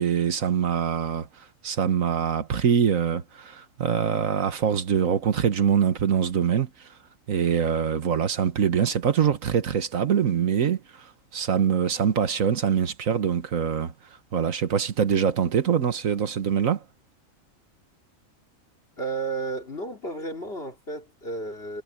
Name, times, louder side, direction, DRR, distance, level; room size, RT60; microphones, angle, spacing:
voice 1, 0.0-6.9 7.3-13.9 14.3-16.8, right 8 dB, 75° right, 1.7 m, -24 dB
voice 2, 19.0-21.8, right 3 dB, 45° left, 3.6 m, -32 dB
omnidirectional pair, 1.4 m